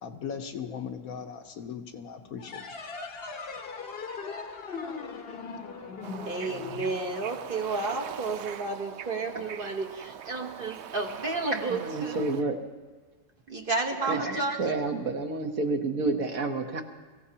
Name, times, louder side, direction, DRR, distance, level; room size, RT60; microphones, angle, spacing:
voice 1, 0.0-2.7, left 7 dB, 60° left, 5 dB, 1.2 m, -38 dB
sound 1, 2.4-7.6, left 4 dB, 40° left, 1.0 m, -39 dB
Bird / Ocean, 6.0-12.4, right 9 dB, 80° right, 0.6 m, -42 dB
voice 2, 6.2-12.3 13.5-14.8, right 3 dB, 35° right, 1 dB, 1.1 m, -31 dB
voice 3, 11.7-12.6 14.1-16.8, right 3 dB, 60° right, 4 dB, 1.4 m, -30 dB
24.0 x 15.5 x 2.8 m, 1.4 s
omnidirectional pair, 1.8 m